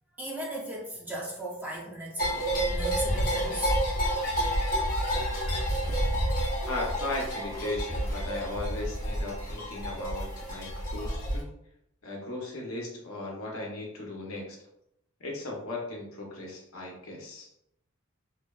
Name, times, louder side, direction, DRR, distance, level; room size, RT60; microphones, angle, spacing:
voice 1, 0.2-3.8, right 1 dB, 10° right, -4 dB, 0.5 m, -37 dB
sound 1, 2.2-11.4, equal, 40° left, 0.9 m, -29 dB
voice 2, 6.6-11.5 12.0-14.6 15.2-17.5, left 2 dB, 70° left, -1 dB, 0.7 m, -37 dB
2.6 x 2.1 x 2.3 m, 0.78 s
head